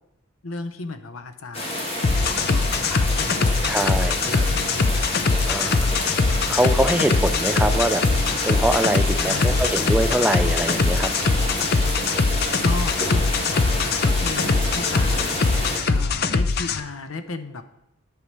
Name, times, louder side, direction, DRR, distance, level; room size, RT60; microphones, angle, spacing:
voice 1, 0.4-1.8 2.4-5.1 5.6-6.0 9.2-9.8 12.6-15.6 15.9-17.6, left 3 dB, 85° left, 8 dB, 0.9 m, -35 dB
sound 1, 1.5-15.8, left 1 dB, 30° left, 1.8 m, -29 dB
sound 2, 2.0-16.8, left 4 dB, 50° left, 0.6 m, -22 dB
voice 2, 3.6-4.4 5.5-6.0 6.5-8.0 8.4-11.1, right 1 dB, 5° right, 9 dB, 0.4 m, -23 dB
sound 3, 6.7-16.1, right 4 dB, 70° right, 1.0 m, -41 dB
10.5 x 4.8 x 6.8 m, 0.85 s
head